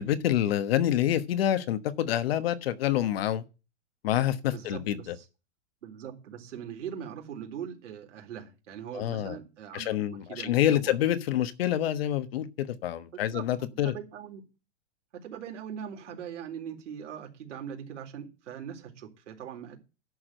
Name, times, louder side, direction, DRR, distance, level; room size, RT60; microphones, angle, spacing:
voice 1, 0.0-3.4 4.0-5.0 8.9-9.4 9.7-13.9, left 11 dB, 55° left, 1.3 m, -27 dB
voice 2, 4.5-5.3 5.8-11.0 13.1-13.4 13.7-14.4 15.1-19.8, right 8 dB, 85° right, 3.8 m, -41 dB
11.0 x 4.9 x 7.6 m
supercardioid pair, 165°, 35 cm